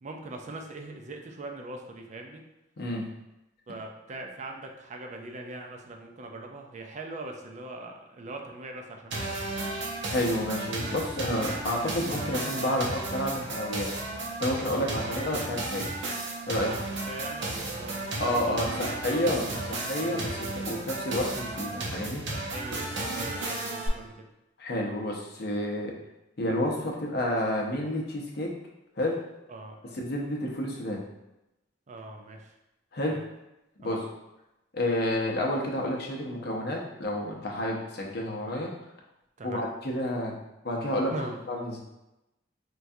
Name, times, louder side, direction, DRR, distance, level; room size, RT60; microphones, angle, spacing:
voice 1, 0.0-2.4 3.7-9.5 16.6-19.2 22.3-24.1 29.5-29.8 31.9-32.5 33.1-33.2 33.8-34.1 39.4-39.6 41.1-41.4, right 2 dB, 40° right, 3 dB, 0.4 m, -41 dB
sound 1, 9.1-23.9, right 2 dB, 85° right, 0.7 m, -34 dB
voice 2, 10.1-13.9 14.4-15.9 16.5-16.7 18.2-22.2 24.6-25.9 26.4-28.6 29.0-29.2 29.9-31.0 32.9-33.2 33.8-34.1 34.7-38.7 39.4-40.3 40.6-41.1 41.5-41.8, left 1 dB, 60° left, 0 dB, 0.6 m, -30 dB
4.5 x 2.3 x 2.6 m, 0.93 s
head